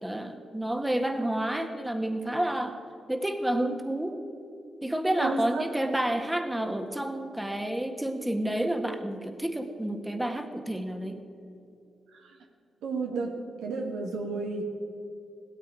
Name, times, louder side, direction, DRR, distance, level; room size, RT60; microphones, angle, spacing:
voice 1, 0.0-2.8 3.1-4.2 4.8-11.2, right 1 dB, 10° right, 6 dB, 1.5 m, -30 dB
voice 2, 5.2-5.6 12.1-12.4 12.8-14.6, right 3 dB, 90° right, 2 dB, 1.7 m, -32 dB
16.5 x 13.0 x 4.9 m, 2.7 s
supercardioid pair, 55°, 0 cm